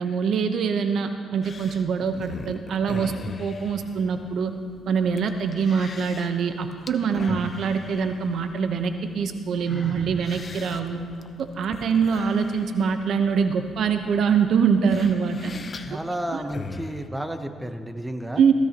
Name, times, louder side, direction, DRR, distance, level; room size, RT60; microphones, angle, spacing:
voice 1, 0.0-3.1 3.4-4.5 4.9-11.0 11.4-15.5 15.9-16.0 16.3-16.4 18.4-18.5, right 6 dB, 65° right, 7 dB, 0.9 m, -24 dB
sound 1, 1.4-17.1, left 4 dB, 40° left, 0.8 m, -41 dB
Sigh, 9.7-10.2, equal, 15° left, 2.4 m, -35 dB
voice 2, 15.8-18.4, right 1 dB, 10° right, 7 dB, 0.9 m, -32 dB
16.0 x 15.5 x 3.0 m, 2.2 s
cardioid pair, 90°, 0 cm